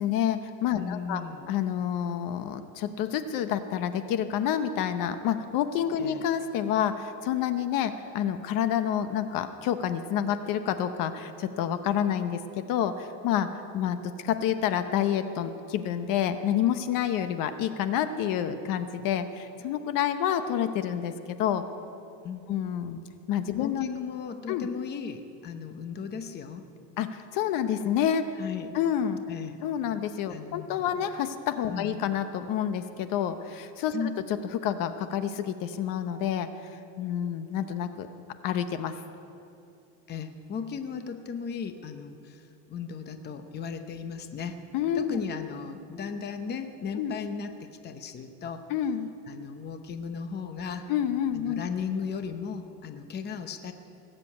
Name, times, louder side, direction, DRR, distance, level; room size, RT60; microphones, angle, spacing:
voice 1, 0.0-1.2 1.5-13.5 13.7-21.6 22.5-23.0 23.3-23.9 24.5-24.7 27.0-28.3 28.7-29.2 29.6-34.1 34.5-36.7 37.0-38.1 38.4-39.0 44.7-45.2 47.0-47.1 48.7-49.1 50.9-51.6, left 9 dB, 55° left, 10 dB, 0.9 m, -28 dB
voice 2, 0.7-1.5 6.0-6.2 22.2-22.5 23.5-26.6 28.4-28.7 29.3-29.6 30.3-31.0 31.7-32.0 33.9-34.1 40.1-44.6 44.9-48.7 49.3-50.9 51.3-53.7, left 6 dB, 25° left, 8 dB, 0.8 m, -36 dB
18.5 x 7.6 x 8.5 m, 2.6 s
cardioid pair, 145°, 39 cm